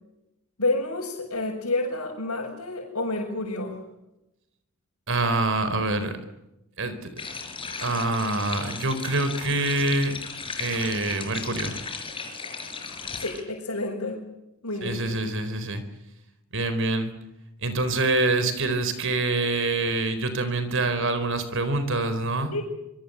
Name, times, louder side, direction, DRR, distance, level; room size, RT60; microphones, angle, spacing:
voice 1, 0.6-3.8 13.2-14.2 14.6-15.1 22.5-22.6, left 2 dB, 90° left, -4 dB, 6.5 m, -29 dB
voice 2, 5.1-6.2 6.8-7.2 7.8-10.2 10.6-11.8 14.8-15.8 16.5-17.1 17.6-22.5, right 2 dB, 60° right, 11 dB, 4.3 m, -25 dB
sound 1, 7.2-13.4, left 4 dB, 25° left, 4.8 m, -36 dB
26.0 x 23.0 x 8.0 m, 0.89 s
head